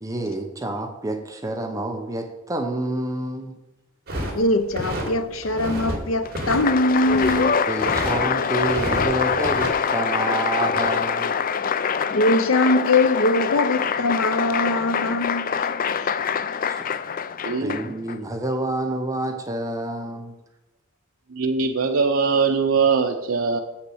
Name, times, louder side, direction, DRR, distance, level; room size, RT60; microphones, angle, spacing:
voice 1, 0.0-3.6 7.7-11.4 16.7-16.9 17.6-20.3, right 1 dB, 15° right, 0.8 m, -28 dB
sound 1, 4.1-5.1 5.4-6.0 6.2-7.5 7.8-8.2 8.6-9.7, right 1 dB, 50° right, 3.1 m, -29 dB
voice 2, 4.3-7.5 12.2-15.7 16.0-16.1, left 2 dB, 75° left, 0.7 m, -22 dB
Applause, 6.2-18.1, left 6 dB, 45° left, 0.4 m, -24 dB
voice 3, 17.4-17.8 21.3-23.6, right 5 dB, 80° right, 0.7 m, -21 dB
7.7 x 5.9 x 7.8 m
head